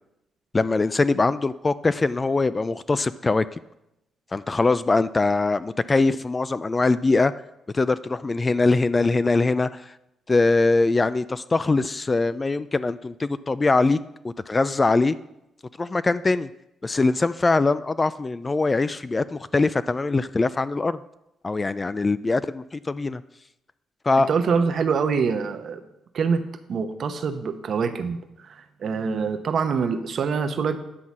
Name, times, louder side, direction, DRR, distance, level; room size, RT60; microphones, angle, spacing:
voice 1, 0.5-3.4 4.3-7.3 7.7-9.9 10.3-14.0 14.2-15.1 15.8-16.5 16.8-21.0 21.4-23.2 24.0-24.3, left 3 dB, 25° left, 15 dB, 0.3 m, -22 dB
voice 2, 24.2-25.8 26.1-26.4 26.7-28.2 28.4-30.8, right 5 dB, 55° right, 8 dB, 0.9 m, -25 dB
9.9 x 4.0 x 7.3 m, 0.87 s
cardioid pair, 90°, 0 cm